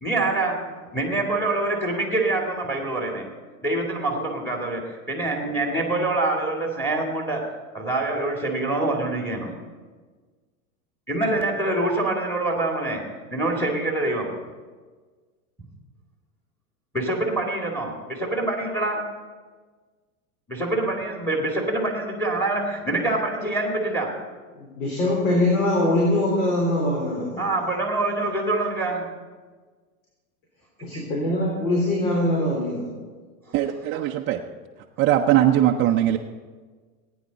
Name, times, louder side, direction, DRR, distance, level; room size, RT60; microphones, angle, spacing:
voice 1, 0.0-3.3 3.6-9.6 11.1-14.4 16.9-19.1 20.5-24.2 27.4-29.1 30.9-31.0, right 2 dB, 5° left, 1 dB, 2.2 m, -25 dB
voice 2, 24.5-27.4 30.8-32.9, left 1 dB, 65° left, -3 dB, 3.8 m, -23 dB
voice 3, 33.5-34.4 35.0-36.2, right 12 dB, 25° right, 1 dB, 0.5 m, -20 dB
18.0 x 9.5 x 4.0 m, 1.4 s
hypercardioid pair, 115°, 44 cm